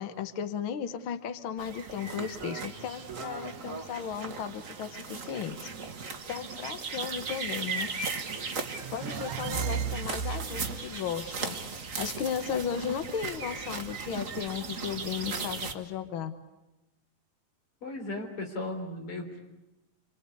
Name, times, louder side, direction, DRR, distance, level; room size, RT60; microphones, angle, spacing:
voice 1, 0.0-5.7 6.3-7.9 8.9-11.6 12.0-16.3, left 8 dB, 75° left, 9 dB, 1.2 m, -35 dB
sound 1, 1.6-15.7, right 4 dB, 65° right, 0.7 m, -37 dB
sound 2, 8.6-10.9, right 7 dB, 85° right, 3.0 m, -35 dB
voice 2, 17.8-19.4, left 2 dB, 40° left, 3 dB, 4.5 m, -36 dB
28.5 x 24.5 x 8.5 m, 0.96 s
omnidirectional pair, 4.0 m